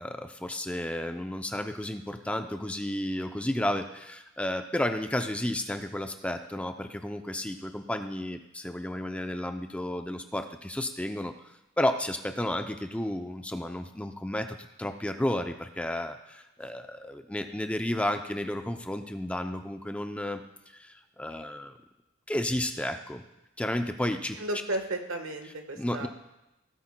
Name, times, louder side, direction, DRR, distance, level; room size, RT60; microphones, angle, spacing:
voice 1, 0.0-11.3 11.8-21.7 22.3-23.2 23.6-24.4 25.8-26.1, left 1 dB, 5° left, 7 dB, 0.4 m, -32 dB
voice 2, 24.4-26.1, right 1 dB, 90° right, 5 dB, 1.3 m, -33 dB
17.0 x 8.4 x 2.2 m, 0.94 s
head